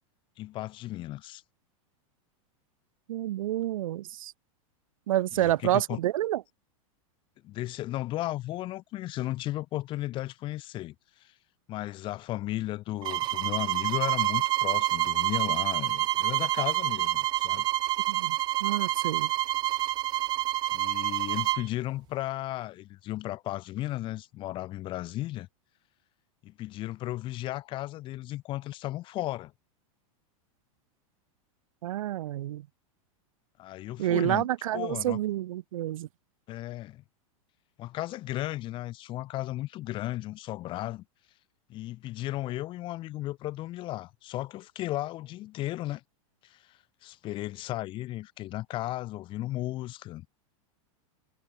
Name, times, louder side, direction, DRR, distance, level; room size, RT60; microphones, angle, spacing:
voice 1, 0.4-1.4 5.3-6.0 7.4-10.9 11.2-11.3 11.7-17.7 20.7-25.5 26.4-29.5 33.6-34.5 34.7-35.2 36.5-37.0 37.8-41.0 41.7-46.0 46.4-50.3, left 16 dB, 30° left, 3.0 m, -35 dB
voice 2, 3.1-4.3 5.1-6.4 18.1-19.3 31.8-32.6 34.0-36.1, right 13 dB, 80° right, 1.4 m, -29 dB
sound 1, 13.0-21.7, right 15 dB, 25° right, 0.7 m, -28 dB
supercardioid pair, 165°, 17 cm